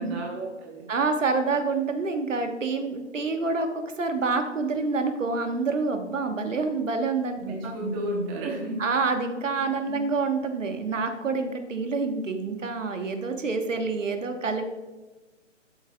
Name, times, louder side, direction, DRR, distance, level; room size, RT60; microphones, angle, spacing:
voice 1, 0.0-0.9 7.4-8.8 9.6-10.0, right 1 dB, 15° right, -1 dB, 0.9 m, -32 dB
voice 2, 0.9-3.7 4.0-7.7 8.8-14.7, right 4 dB, 80° right, 6 dB, 1.3 m, -27 dB
10.0 x 7.8 x 2.3 m, 1.2 s
figure-of-eight pair, 145°, 37 cm